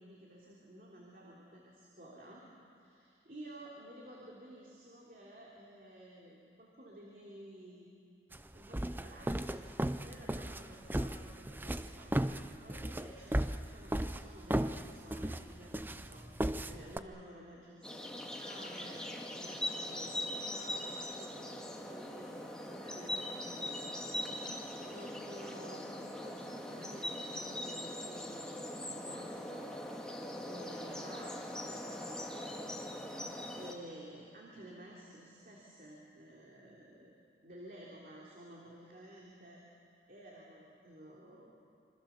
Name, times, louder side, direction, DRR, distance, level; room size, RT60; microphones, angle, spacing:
voice 1, 0.0-2.4 2.8-7.9 8.5-9.6 10.0-12.3 12.6-23.9 24.8-30.1 30.4-33.0 33.3-37.1 37.4-39.6 40.1-41.5, right 1 dB, 50° right, -3 dB, 3.1 m, -53 dB
sound 1, 8.3-17.0, right 1 dB, 10° right, 0.5 m, -36 dB
sound 2, 17.8-33.7, left 1 dB, 5° left, 1.9 m, -41 dB
27.0 x 24.5 x 7.1 m, 2.5 s
head